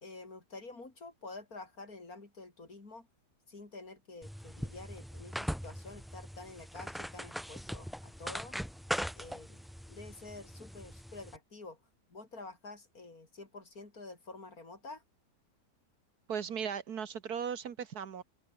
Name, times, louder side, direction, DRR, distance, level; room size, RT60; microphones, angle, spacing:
voice 1, 0.0-3.1 3.5-8.6 9.1-11.8 12.1-15.0, left 3 dB, 55° left, 4.5 m, -49 dB
sound 1, 4.2-11.4, equal, ahead, 0.7 m, -41 dB
voice 2, 16.3-18.2, right 7 dB, 65° right, 1.8 m, -37 dB
open air
omnidirectional pair, 1.8 m